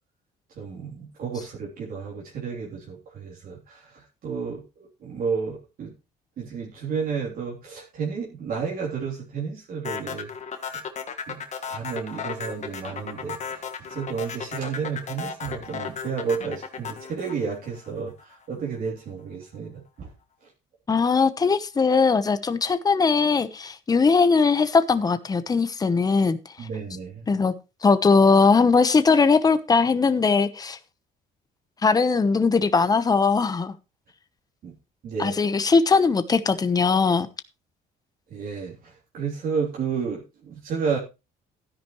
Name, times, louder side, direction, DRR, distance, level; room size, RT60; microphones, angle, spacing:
voice 1, 0.6-5.9 6.4-10.3 11.3-11.4 11.7-20.1 26.6-27.2 34.6-34.7 35.0-35.3 38.3-41.0, right 6 dB, 60° right, 3.3 m, -32 dB
sound 1, 9.8-18.2, left 6 dB, 45° left, 1.6 m, -34 dB
voice 2, 20.9-26.7 27.3-27.5 27.8-30.8 31.8-33.7 35.2-37.3, left 4 dB, 20° left, 1.0 m, -20 dB
13.0 x 10.5 x 3.1 m
cardioid pair, 110°, 17 cm